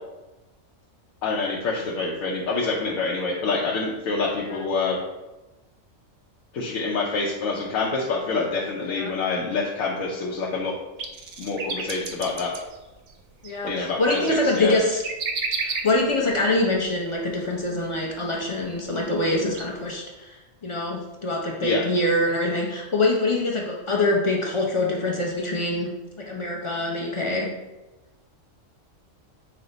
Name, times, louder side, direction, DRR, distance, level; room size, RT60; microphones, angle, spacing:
voice 1, 1.2-5.0 6.5-10.7 11.4-12.5 13.6-14.8 21.6-21.8, left 3 dB, 85° left, -4 dB, 1.1 m, -26 dB
sound 1, 11.0-16.3 17.1-17.2 18.6-18.7 19.2-19.6 19.9-20.0, right 4 dB, 65° right, 0.5 m, -32 dB
voice 2, 13.4-15.0 15.6-25.9 26.2-27.5, left 2 dB, 50° left, -2 dB, 0.3 m, -24 dB
5.6 x 2.1 x 3.9 m, 1.1 s
omnidirectional pair, 1.4 m